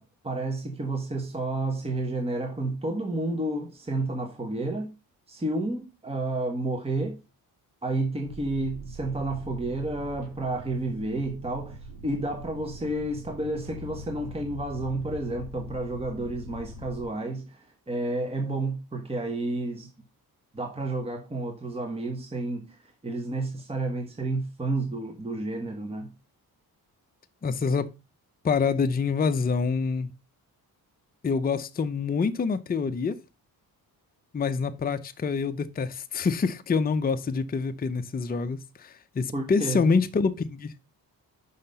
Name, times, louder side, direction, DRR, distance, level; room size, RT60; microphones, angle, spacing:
voice 1, 0.0-4.9 5.3-7.2 7.8-19.9 20.5-26.1 39.3-39.9, right 2 dB, 15° right, 1.2 m, -31 dB
sound 1, 8.3-17.0, equal, 60° right, 3.2 m, -43 dB
voice 2, 27.4-27.9 28.4-30.1 31.2-33.2 34.3-40.7, left 5 dB, 25° left, 0.6 m, -26 dB
5.8 x 5.6 x 5.4 m
cardioid pair, 115°, 37 cm